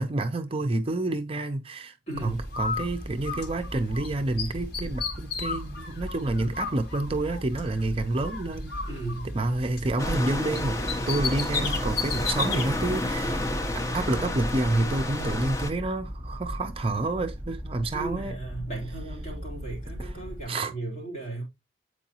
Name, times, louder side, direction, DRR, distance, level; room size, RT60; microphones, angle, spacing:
voice 1, 0.0-1.9 2.2-8.7 9.3-10.8 11.1-13.4 13.9-18.4 20.0-20.1 20.5-20.7, right 2 dB, 35° right, 0.5 m, -28 dB
voice 2, 2.1-2.4 8.9-9.3 15.1-15.4 17.9-21.4, right 2 dB, 40° left, 3.2 m, -36 dB
sound 1, 2.1-20.4, equal, 10° right, 2.7 m, -39 dB
Bird, 2.5-4.1 4.4-7.8 8.2-10.3 10.5-12.7, left 5 dB, 60° left, 1.5 m, -34 dB
sound 2, 10.0-15.7, left 1 dB, 20° left, 0.8 m, -30 dB
8.2 x 4.8 x 2.9 m
head